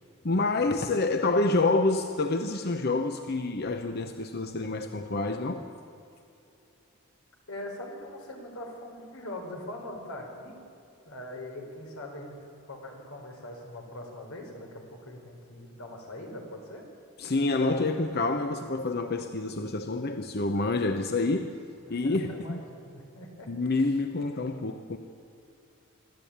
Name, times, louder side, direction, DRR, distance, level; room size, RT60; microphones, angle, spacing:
voice 1, 0.2-5.6 17.2-21.5 21.9-22.6 23.5-25.0, left 3 dB, 45° left, 7 dB, 0.8 m, -27 dB
voice 2, 7.5-10.6 11.0-16.8 21.9-23.5, left 1 dB, 90° left, 2 dB, 4.2 m, -42 dB
26.0 x 12.5 x 8.7 m, 2.7 s
head